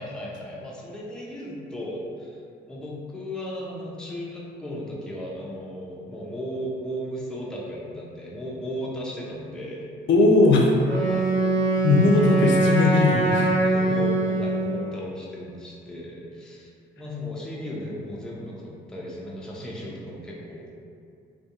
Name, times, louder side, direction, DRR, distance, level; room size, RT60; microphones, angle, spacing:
voice 1, 0.0-2.4 2.7-9.8 11.1-11.4 12.0-12.7 13.6-16.7 17.0-20.8, equal, 5° left, -5 dB, 0.4 m, -35 dB
voice 2, 10.1-10.7 11.8-13.5, left 3 dB, 70° left, -1 dB, 0.4 m, -19 dB
Wind instrument woodwind instrument, 10.8-14.8, right 2 dB, 40° right, 0.8 m, -22 dB
2.2 x 2.2 x 2.8 m, 2.4 s
cardioid pair, 90°, 20 cm